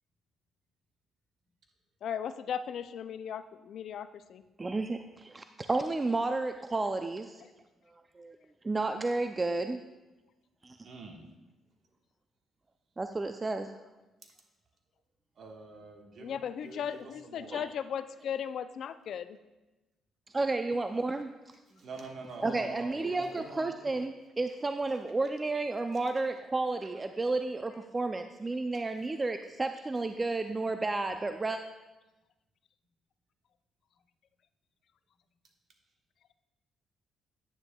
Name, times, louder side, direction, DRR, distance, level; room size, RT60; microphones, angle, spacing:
voice 1, 2.0-4.4 16.2-19.4, left 8 dB, 65° left, 12 dB, 0.4 m, -37 dB
voice 2, 4.6-7.4 8.2-8.4 8.6-9.8 10.6-10.8 13.0-13.7 17.5-17.7 20.3-21.3 22.4-31.6, right 3 dB, 25° right, 7 dB, 0.4 m, -32 dB
voice 3, 10.8-11.2 14.2-14.3 15.4-17.6 21.8-23.7 26.8-26.9 28.7-28.8, right 3 dB, 60° right, 2 dB, 1.3 m, -46 dB
9.8 x 9.5 x 2.2 m, 1.1 s
cardioid pair, 90°, 0 cm